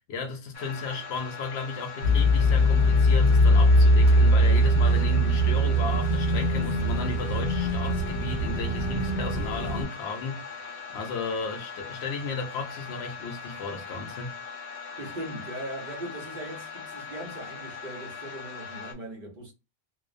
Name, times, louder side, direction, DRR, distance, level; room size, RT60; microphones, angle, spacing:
voice 1, 0.1-14.3, left 4 dB, 90° left, 0.9 m, -34 dB
sound 1, 0.5-18.9, left 5 dB, 40° left, 0.6 m, -41 dB
sound 2, 2.0-9.8, equal, 85° right, 1.1 m, -21 dB
voice 2, 15.0-19.5, right 1 dB, 55° right, 0.9 m, -39 dB
2.4 x 2.1 x 2.4 m
omnidirectional pair, 1.1 m